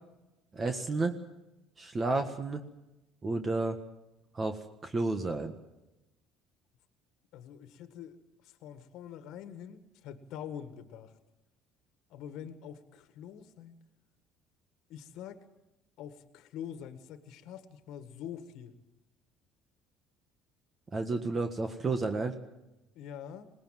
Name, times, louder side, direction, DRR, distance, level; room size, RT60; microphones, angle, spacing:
voice 1, 0.5-1.1 1.8-2.6 3.2-3.8 4.3-5.5 20.9-22.3, right 3 dB, 30° right, 6 dB, 1.6 m, -31 dB
voice 2, 7.3-11.1 12.1-13.8 14.9-15.5 16.0-18.7 23.0-23.5, left 9 dB, 70° left, 10 dB, 1.6 m, -45 dB
21.0 x 18.5 x 7.6 m, 0.97 s
supercardioid pair, 100°, 0 cm